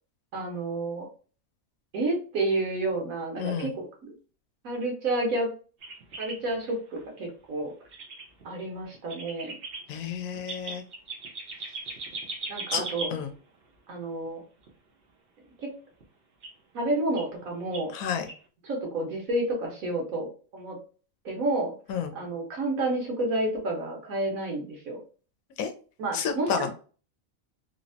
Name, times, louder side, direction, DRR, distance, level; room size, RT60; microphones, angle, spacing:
voice 1, 0.3-1.1 1.9-4.1 4.6-5.5 6.2-7.7 8.4-9.6 12.5-13.1 13.9-14.4 15.6-15.7 16.7-17.9 18.6-20.8 21.2-21.7 22.1-25.0 26.0-26.7, right 2 dB, 80° right, 1 dB, 1.3 m, -30 dB
voice 2, 3.4-3.7 9.9-10.8 12.7-12.8 13.1-13.3 17.9-18.3 21.9-22.1 25.6-25.7 26.1-26.7, left 7 dB, 90° left, 6 dB, 1.0 m, -30 dB
sound 1, 5.8-7.0 7.3-7.4 7.6-7.7 7.9-8.4 8.9-9.9 10.3-13.3 14.6-14.7 16.0-16.1 16.4-16.5 17.2-17.4 17.7-17.8 18.3-18.4, right 3 dB, 55° right, 0.8 m, -38 dB
3.2 x 2.0 x 2.6 m, 0.39 s
omnidirectional pair, 1.4 m